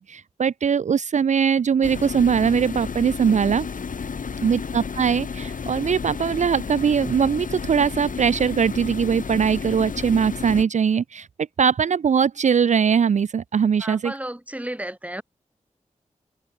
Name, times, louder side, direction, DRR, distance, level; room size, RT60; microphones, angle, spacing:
voice 1, 0.0-3.7 4.4-11.3 11.6-14.1, right 7 dB, 65° right, 0.4 m, -21 dB
sound 1, 1.8-10.6, left 5 dB, 90° left, 4.4 m, -32 dB
voice 2, 13.8-15.2, right 1 dB, 10° right, 3.0 m, -32 dB
wide cardioid pair, 80°, 13 cm